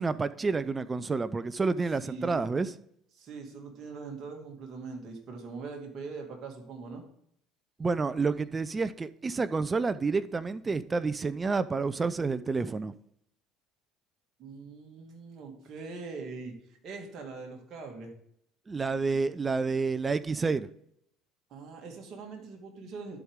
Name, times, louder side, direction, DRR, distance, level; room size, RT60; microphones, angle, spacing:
voice 1, 0.0-2.7 7.8-12.9 18.7-20.7, right 4 dB, 25° right, 0.5 m, -29 dB
voice 2, 2.0-2.5 3.1-7.0 14.4-18.1 21.5-23.2, right 4 dB, 50° right, 2.2 m, -42 dB
11.5 x 4.7 x 3.6 m
hypercardioid pair, 75°, 0 cm